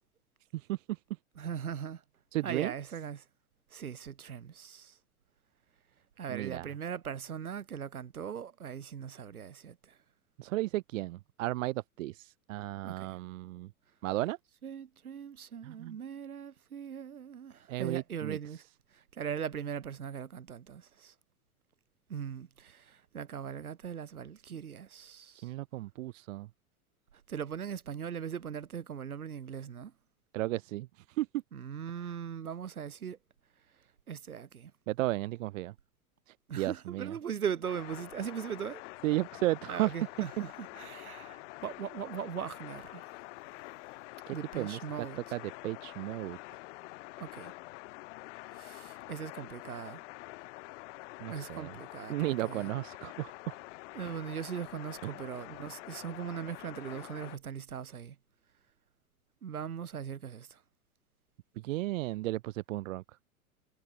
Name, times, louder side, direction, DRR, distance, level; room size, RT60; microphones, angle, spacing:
voice 1, 0.5-1.0 2.3-2.7 6.3-6.6 10.4-13.7 14.0-14.4 15.6-16.0 17.7-18.4 25.4-26.5 30.3-31.3 34.9-35.7 36.3-37.1 39.0-39.9 44.3-44.8 45.3-46.4 51.2-51.7 52.1-53.5 55.0-55.1 61.6-63.0, right 17 dB, 60° right, 1.6 m, -34 dB
voice 2, 1.4-2.0 2.4-3.2 3.7-5.0 6.2-10.0 12.8-13.2 14.6-18.6 18.9-21.1 22.1-25.5 27.3-29.9 31.5-33.2 34.1-34.7 36.5-38.8 39.7-43.1 44.3-45.2 47.2-47.5 48.5-50.0 51.3-52.7 53.9-58.2 59.4-60.6, right 8 dB, 80° right, 4.7 m, -40 dB
sound 1, 37.6-57.4, left 22 dB, 55° left, 2.7 m, -47 dB
figure-of-eight pair, 95°, 43 cm